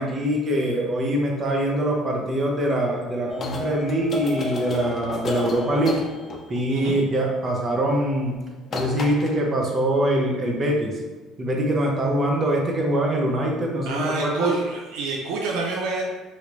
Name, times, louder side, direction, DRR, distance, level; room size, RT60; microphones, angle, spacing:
voice 1, 0.0-6.0 6.5-8.4 8.7-11.0 11.4-14.6, right 1 dB, 40° right, -1 dB, 0.8 m, -23 dB
sound 1, 3.3-6.7 8.2-8.4 8.7-9.4, left 3 dB, 40° left, 0.5 m, -32 dB
voice 2, 13.9-16.0, right 3 dB, 80° right, -1 dB, 0.4 m, -27 dB
3.2 x 2.9 x 2.5 m, 1.3 s
supercardioid pair, 85°, 0 cm